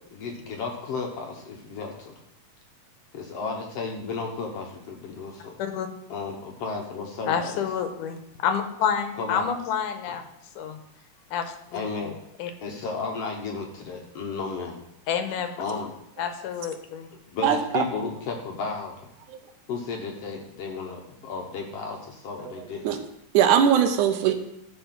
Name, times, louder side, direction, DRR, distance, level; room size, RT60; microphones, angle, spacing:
voice 1, 0.1-2.1 3.1-5.5 6.1-7.6 9.2-9.5 10.0-10.2 11.7-12.1 12.6-14.8 15.6-15.9 17.1-19.1 19.7-23.0, left 4 dB, 65° left, 1 dB, 1.7 m, -33 dB
voice 2, 7.3-10.2 10.6-10.8 11.3-11.8 12.4-12.5 15.1-15.5 16.2-17.1, left 7 dB, 80° left, 7 dB, 2.4 m, -28 dB
voice 3, 17.4-17.8 22.8-23.0 23.3-24.3, right 9 dB, 75° right, 7 dB, 2.2 m, -20 dB
13.0 x 4.4 x 5.8 m, 0.83 s
omnidirectional pair, 3.7 m